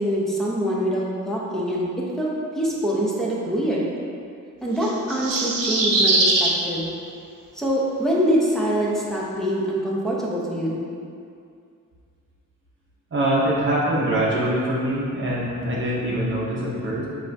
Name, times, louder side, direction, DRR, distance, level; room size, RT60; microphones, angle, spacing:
voice 1, 0.0-3.9 4.6-6.9 7.5-10.8, equal, ahead, -6 dB, 0.6 m, -24 dB
sound 1, 4.8-6.5, right 2 dB, 80° right, 0.7 m, -21 dB
voice 2, 13.1-17.1, right 1 dB, 35° right, -6 dB, 0.7 m, -23 dB
6.5 x 2.5 x 2.6 m, 2.4 s
wide cardioid pair, 140°, 33 cm